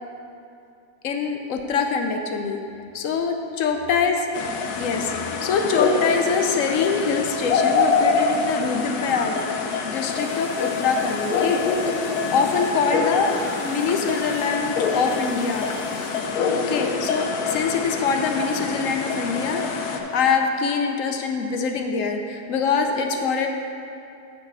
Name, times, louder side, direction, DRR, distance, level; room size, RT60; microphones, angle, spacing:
voice 1, 1.0-2.6 2.9-4.2 4.8-15.7 16.5-23.5, left 5 dB, 70° left, 4 dB, 0.9 m, -24 dB
sound 1, 4.3-20.0, left 4 dB, 85° left, 1.2 m, -25 dB
sound 2, 9.9-16.3, right 1 dB, 85° right, 1.7 m, -44 dB
7.7 x 4.1 x 6.0 m, 2.6 s
omnidirectional pair, 1.6 m